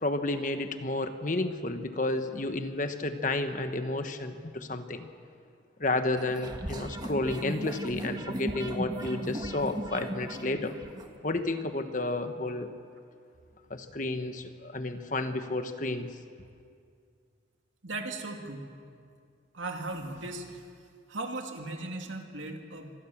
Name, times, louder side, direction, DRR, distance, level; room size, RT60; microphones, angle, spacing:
voice 1, 0.0-5.1 5.8-10.7 11.2-12.7 13.7-16.1, left 2 dB, 40° left, 8 dB, 1.3 m, -31 dB
sound 1, 6.2-11.1, right 1 dB, 20° right, 1.4 m, -37 dB
voice 2, 17.8-18.7 19.5-20.6 21.1-22.9, right 2 dB, 85° right, 3 dB, 2.6 m, -37 dB
25.5 x 20.0 x 7.4 m, 2.3 s
head